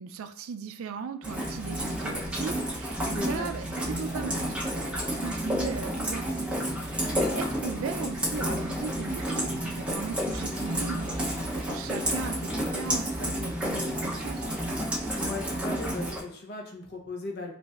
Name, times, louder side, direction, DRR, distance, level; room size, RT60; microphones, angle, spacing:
voice 1, 0.0-14.6, right 6 dB, 80° right, 9 dB, 0.4 m, -38 dB
Rain, 1.2-16.2, equal, 5° right, 0.6 m, -31 dB
voice 2, 3.1-3.5 15.1-17.5, left 2 dB, 50° left, 1 dB, 0.7 m, -37 dB
sound 1, 3.2-13.0, right 2 dB, 60° right, 0.9 m, -48 dB
5.1 x 2.6 x 2.3 m, 0.66 s
head